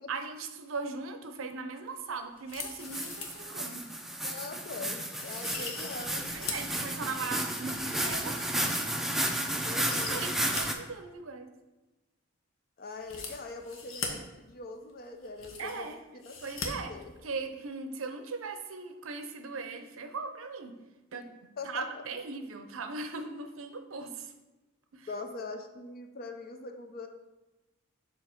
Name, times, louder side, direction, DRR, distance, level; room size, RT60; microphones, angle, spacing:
voice 1, 0.1-3.9 6.3-8.7 9.5-11.5 15.6-16.0 16.4-16.9 17.2-20.8 21.1-21.3 21.7-24.3 24.9-25.1, right 4 dB, 85° right, 8 dB, 0.6 m, -39 dB
sound 1, 2.4-3.5 3.8-3.9 4.5-4.6 5.1-6.7 7.2-9.3 9.7-10.6 10.9-11.0 13.0-14.1 14.9-15.0 15.2-15.9 16.2-16.7 17.0-17.1, left 5 dB, 80° left, 0.9 m, -41 dB
sound 2, 2.8-10.7, right 1 dB, ahead, 0.4 m, -33 dB
voice 2, 4.2-6.3 9.6-10.4 12.8-16.3 16.9-17.1 21.6-22.0 25.1-27.1, left 3 dB, 50° left, 5 dB, 0.6 m, -42 dB
6.9 x 2.9 x 5.0 m, 1.1 s
head